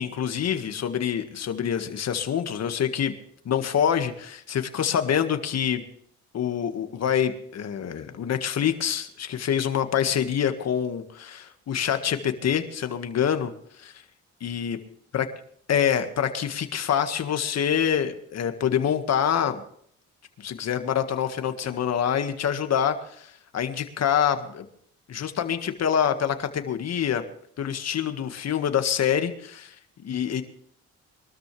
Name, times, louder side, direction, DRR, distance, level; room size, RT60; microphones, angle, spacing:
voice 1, 0.0-3.1 3.5-5.8 6.3-13.5 13.8-13.9 14.4-14.8 15.1-15.3 15.7-19.6 20.4-24.7 25.1-27.2 27.6-29.7 30.0-30.4, left 8 dB, 60° left, 8 dB, 1.8 m, -26 dB
23.0 x 13.0 x 3.3 m, 0.64 s
cardioid pair, 90°, 30 cm